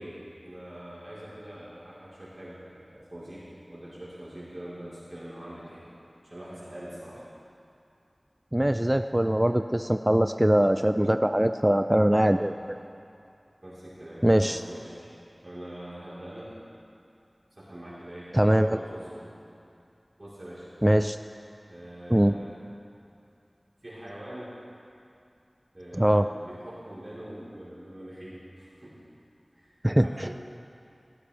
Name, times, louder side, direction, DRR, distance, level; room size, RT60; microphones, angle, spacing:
voice 1, 0.0-5.9 6.2-7.2 12.2-12.5 13.6-15.1 15.4-16.5 17.6-19.3 20.2-20.7 21.7-22.5 23.8-24.6 25.7-29.0 29.5-29.7 30.0-30.4, right 1 dB, 50° right, -11 dB, 4.0 m, -43 dB
voice 2, 8.5-12.5 14.2-14.6 18.3-18.7 20.8-21.2 22.1-22.3 25.9-26.3 29.8-30.4, right 1 dB, 20° right, 8 dB, 0.4 m, -22 dB
17.0 x 14.5 x 3.5 m, 2.5 s
wide cardioid pair, 45°, 0 cm